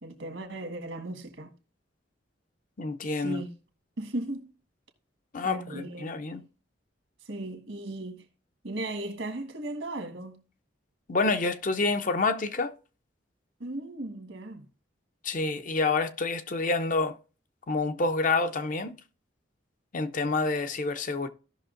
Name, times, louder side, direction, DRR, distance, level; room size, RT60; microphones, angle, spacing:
voice 1, 0.0-1.5 3.1-3.5 4.0-4.5 5.4-6.2 7.3-8.2 8.6-10.4 13.6-14.6, right 2 dB, 80° right, 1.5 m, -36 dB
voice 2, 2.8-3.4 5.3-6.4 11.1-12.7 15.2-17.2 17.7-18.9 19.9-21.3, left 3 dB, 45° left, 0.6 m, -28 dB
16.0 x 5.8 x 2.5 m
head